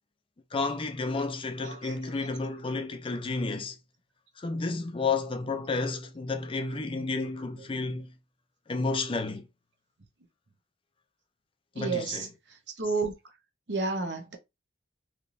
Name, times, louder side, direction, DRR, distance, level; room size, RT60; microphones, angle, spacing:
voice 1, 0.5-3.8 4.4-8.1 8.7-9.4 11.8-12.2, left 3 dB, 30° left, 0.4 m, -31 dB
voice 2, 1.6-2.3 4.5-4.6 7.6-7.7 11.7-13.1 13.7-14.4, right 4 dB, 65° right, 0.9 m, -32 dB
3.3 x 2.9 x 2.6 m
head